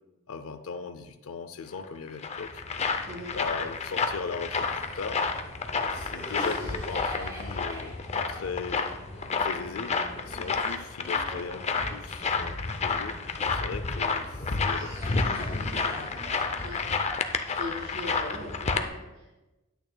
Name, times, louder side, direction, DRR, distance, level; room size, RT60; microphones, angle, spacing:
voice 1, 0.3-3.0 3.3-5.3 5.9-8.0 8.3-8.9 9.4-9.9 10.3-13.2 13.5-16.2, left 5 dB, 80° left, 8 dB, 0.5 m, -38 dB
sound 1, 1.8-18.9, left 4 dB, 30° left, 0.5 m, -30 dB
Cough, 4.3-13.6 14.1-18.1, right 1 dB, 20° right, 3.1 m, -45 dB
voice 2, 17.6-19.4, left 1 dB, 65° right, -2 dB, 2.0 m, -39 dB
10.5 x 9.1 x 2.2 m, 1.1 s
head